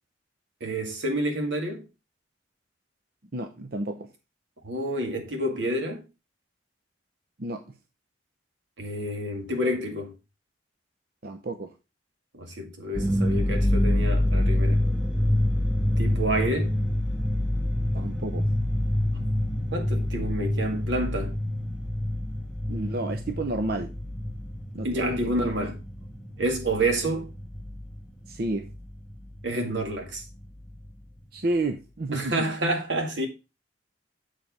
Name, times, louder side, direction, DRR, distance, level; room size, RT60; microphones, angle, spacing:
voice 1, 0.6-1.9 4.6-6.0 8.8-10.1 12.3-14.8 16.0-16.7 19.1-19.2 19.7-21.4 24.8-25.8 26.4-27.3 29.4-30.2 32.1-33.3, right 1 dB, 85° right, 2.1 m, -29 dB
voice 2, 3.3-4.1 7.4-7.6 11.2-11.7 17.9-18.5 22.7-24.0 24.7-25.5 28.3-28.7 31.3-32.5, right 2 dB, 55° right, 0.7 m, -31 dB
sound 1, 12.9-28.0 28.3-29.4 29.8-29.9 30.2-30.9, left 1 dB, 5° right, 1.1 m, -27 dB
7.4 x 5.0 x 5.4 m
head